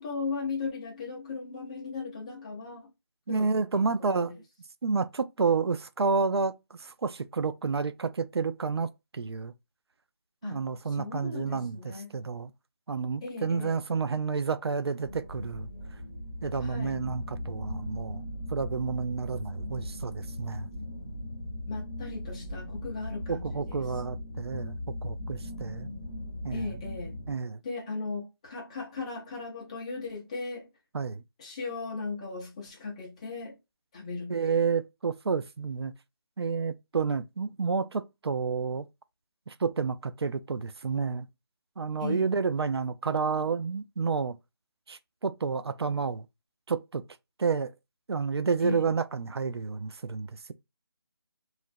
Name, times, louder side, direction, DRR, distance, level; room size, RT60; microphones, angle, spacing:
voice 1, 0.0-2.9 3.3-4.4 10.4-10.6 10.9-12.1 13.2-13.8 16.6-16.9 21.7-23.8 26.5-27.1 27.6-30.7 31.4-33.6 33.9-34.7 42.0-42.3 48.6-48.8, left 4 dB, 15° left, 0.6 m, -37 dB
voice 2, 3.3-4.4 4.8-6.5 6.8-9.5 10.4-12.5 12.9-15.7 16.4-18.2 18.5-20.7 23.3-25.9 26.4-26.8 27.3-27.6 30.9-31.2 34.3-35.9 36.4-38.9 39.5-41.3 41.8-44.4 44.9-46.3 46.7-47.0 47.4-47.7 48.1-50.5, right 5 dB, 85° right, 0.4 m, -30 dB
sound 1, 15.0-27.3, left 1 dB, 20° right, 1.5 m, -38 dB
3.0 x 2.4 x 2.5 m
figure-of-eight pair, 165°, 13 cm